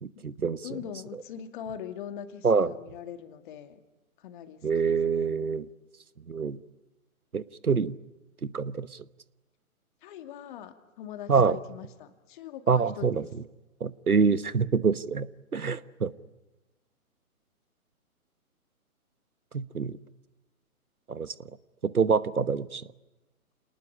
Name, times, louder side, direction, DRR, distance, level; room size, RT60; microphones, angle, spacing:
voice 1, 0.0-0.8 2.4-2.7 4.6-5.7 6.3-6.6 7.3-7.9 8.4-8.9 11.3-11.6 12.7-13.2 13.8-15.3 15.5-16.1 19.5-20.0 21.1-21.3 21.8-22.8, right 5 dB, 90° right, 16 dB, 1.2 m, -26 dB
voice 2, 0.6-3.8 4.2-4.6 4.8-5.4 10.0-13.1, left 9 dB, 35° left, 7 dB, 2.3 m, -42 dB
28.5 x 19.5 x 9.9 m, 1.1 s
figure-of-eight pair, 130°, 43 cm